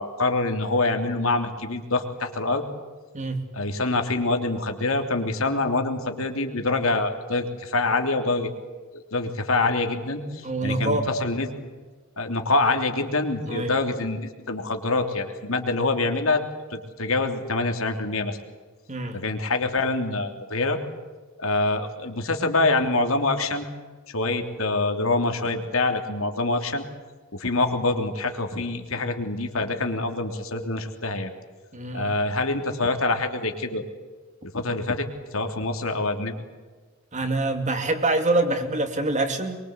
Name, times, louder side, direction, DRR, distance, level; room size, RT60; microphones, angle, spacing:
voice 1, 0.0-2.6 3.5-8.5 8.9-11.5 12.2-16.4 16.7-18.4 19.1-20.8 21.4-23.7 24.1-26.8 27.3-31.3 31.9-33.8 34.5-36.3, left 2 dB, 75° left, 4 dB, 3.3 m, -25 dB
voice 2, 3.1-3.5 10.4-11.1 13.5-13.7 18.9-19.2 31.7-32.1 37.1-39.6, right 2 dB, 35° right, 6 dB, 2.6 m, -25 dB
24.0 x 23.5 x 8.3 m, 1.4 s
head